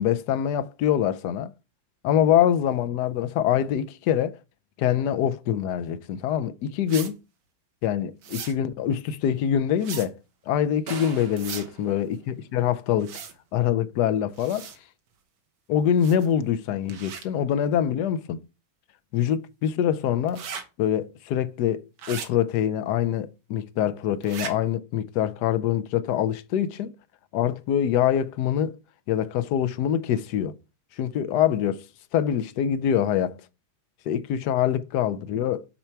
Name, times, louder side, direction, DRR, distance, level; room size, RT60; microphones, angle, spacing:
voice 1, 0.0-1.5 2.0-4.4 4.8-7.2 7.8-10.1 10.5-13.1 13.5-14.7 15.7-18.4 19.1-20.4 20.8-26.9 27.3-28.8 29.1-30.5 31.0-31.8 32.1-33.4 34.1-35.7, left 9 dB, 70° left, 1.0 m, -24 dB
sound 1, 6.9-7.1 8.2-8.5 9.8-10.1 11.3-11.7 13.0-13.3 14.4-14.8 16.0-16.3 16.9-17.2 20.3-20.6 22.0-22.3 24.2-24.5, right 7 dB, 75° right, 2.0 m, -37 dB
sound 2, 10.9-13.0, right 4 dB, 40° right, 0.9 m, -41 dB
6.8 x 4.4 x 5.8 m
omnidirectional pair, 2.2 m